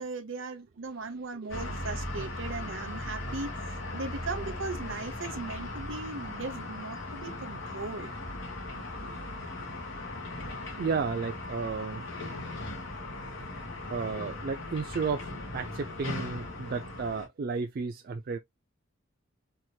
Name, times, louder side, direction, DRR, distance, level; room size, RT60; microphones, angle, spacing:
voice 1, 0.0-8.1, right 3 dB, 65° right, 0.8 m, -38 dB
sound 1, 1.5-17.3, left 2 dB, 65° left, 2.0 m, -38 dB
voice 2, 8.5-9.3 9.6-9.7 10.8-12.0 13.0-13.1 13.9-18.4, right 5 dB, 45° right, 0.4 m, -33 dB
4.6 x 2.9 x 2.3 m
head